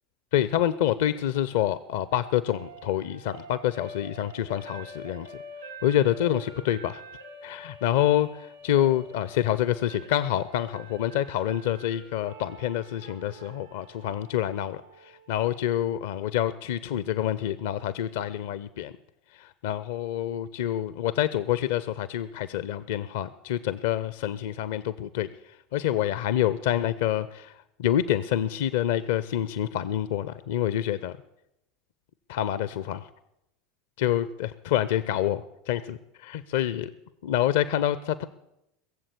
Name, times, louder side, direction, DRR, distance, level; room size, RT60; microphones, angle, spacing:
voice 1, 0.3-5.4 5.8-7.0 7.4-18.9 19.3-25.3 25.7-31.2 32.3-33.1 34.0-36.9 37.2-38.2, left 11 dB, 60° left, 15 dB, 0.5 m, -27 dB
sound 1, 1.3-15.4, right 1 dB, 80° right, 2.1 m, -47 dB
20.0 x 7.6 x 8.3 m, 0.86 s
figure-of-eight pair, 80°, 0 cm